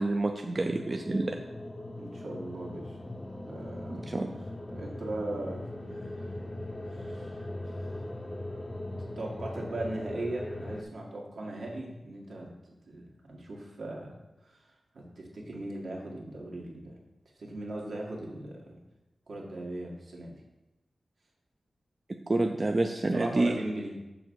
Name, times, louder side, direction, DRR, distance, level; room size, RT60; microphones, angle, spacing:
voice 1, 0.0-1.4 3.9-4.3 22.3-23.5, right 2 dB, 30° right, 3 dB, 0.4 m, -28 dB
sound 1, 0.6-10.8, left 1 dB, 20° left, 0.6 m, -40 dB
voice 2, 2.0-3.0 3.5-4.1 4.7-6.3 6.9-8.1 9.2-12.5 12.9-14.1 14.4-17.0 17.4-18.8 19.3-20.3 23.1-24.0, right 1 dB, 70° right, -2 dB, 1.8 m, -39 dB
6.9 x 3.6 x 6.1 m, 1.0 s
wide cardioid pair, 135°, 0 cm